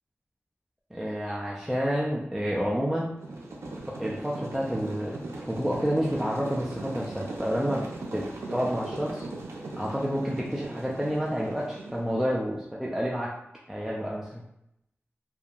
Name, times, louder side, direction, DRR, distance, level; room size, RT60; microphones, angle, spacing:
voice 1, 0.9-3.1 4.0-7.8 8.1-9.3 9.8-13.3 13.7-14.4, equal, 5° right, -5 dB, 0.4 m, -29 dB
sound 1, 3.2-12.3, right 2 dB, 90° right, 0.4 m, -39 dB
2.7 x 2.5 x 2.3 m, 0.81 s
wide cardioid pair, 85°, 5 cm